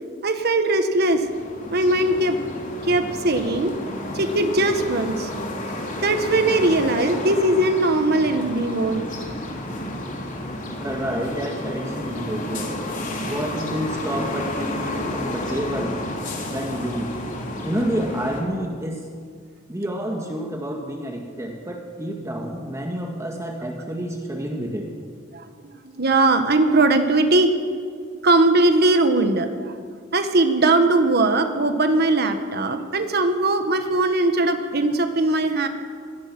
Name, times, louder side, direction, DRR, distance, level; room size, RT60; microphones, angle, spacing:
voice 1, 0.2-1.2 1.7-2.4 2.8-3.7 4.1-5.3 6.0-9.0 25.3-25.4 26.0-27.5 28.2-29.8 30.1-35.7, right 2 dB, 55° right, 7 dB, 1.5 m, -20 dB
sound 1, 1.0-18.4, left 1 dB, 45° left, 3.7 m, -31 dB
voice 2, 10.8-12.8 13.2-16.0 16.5-17.1 17.6-19.1 19.7-24.9, equal, 15° right, 1 dB, 1.7 m, -29 dB
24.0 x 19.0 x 6.1 m, 2.1 s
head